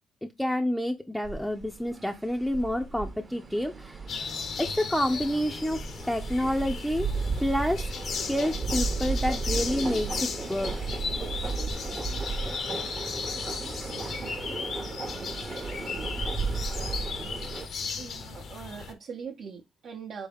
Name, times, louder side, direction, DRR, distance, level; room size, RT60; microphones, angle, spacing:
voice 1, 0.4-4.0 4.6-7.1 7.4-7.8 8.3-10.7, left 1 dB, 5° left, 0.5 m, -28 dB
sound 1, 1.2-17.7, right 4 dB, 35° right, 0.8 m, -34 dB
sound 2, 4.1-18.9, left 5 dB, 60° left, 0.7 m, -36 dB
voice 2, 18.0-20.3, right 6 dB, 65° right, 0.8 m, -41 dB
3.9 x 3.5 x 3.4 m
cardioid pair, 90°, 0 cm